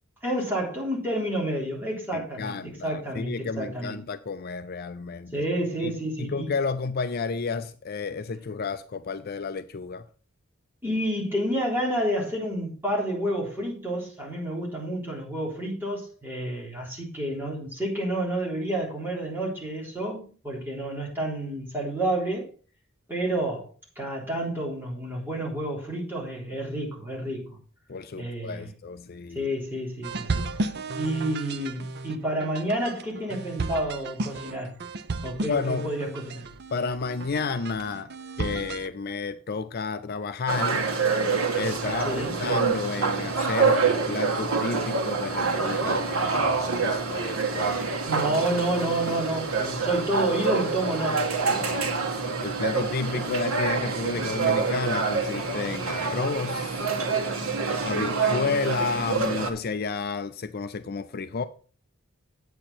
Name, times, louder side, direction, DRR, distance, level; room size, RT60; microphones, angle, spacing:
voice 1, 0.2-3.9 5.3-6.5 10.8-22.5 23.1-23.7 24.0-27.6 28.2-28.7 29.3-30.4 31.0-34.7 35.2-36.5 42.0-42.3 48.1-51.3, right 1 dB, 10° right, 3.6 m, -29 dB
voice 2, 2.1-5.4 5.8-5.9 6.2-10.0 27.9-29.5 35.5-35.9 36.7-38.1 38.4-40.9 41.5-47.9 51.5-52.0 52.4-56.8 57.8-61.4, left 4 dB, 45° left, 0.5 m, -31 dB
sound 1, 30.0-38.9, right 3 dB, 50° right, 0.7 m, -34 dB
sound 2, 40.5-59.5, right 4 dB, 85° right, 1.5 m, -26 dB
8.6 x 8.3 x 4.3 m
head